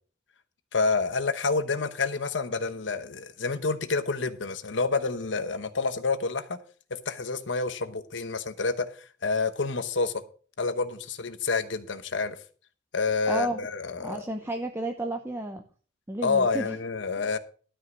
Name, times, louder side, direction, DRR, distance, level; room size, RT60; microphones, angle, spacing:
voice 1, 0.7-6.6 6.9-10.1 10.6-12.4 12.9-14.2 16.2-17.4, left 4 dB, 90° left, 1.0 m, -28 dB
voice 2, 13.3-13.6 14.0-15.6 16.1-16.8 17.2-17.3, right 1 dB, 15° right, 0.7 m, -32 dB
12.5 x 5.6 x 6.2 m
head